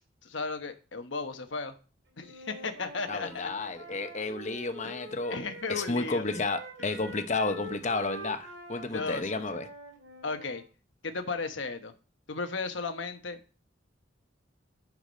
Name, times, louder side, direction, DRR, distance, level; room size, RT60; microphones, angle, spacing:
voice 1, 0.2-1.7 2.2-3.5 4.8-4.9 5.3-6.3 8.9-9.4 10.2-10.6 11.0-11.9 12.3-13.4, left 4 dB, 80° left, 1.1 m, -35 dB
Wind instrument woodwind instrument, 2.2-6.0 6.2-10.6, right 1 dB, 80° right, 3.7 m, -45 dB
voice 2, 3.1-5.4 5.7-9.7, left 3 dB, 40° left, 0.9 m, -32 dB
10.5 x 4.9 x 5.2 m
head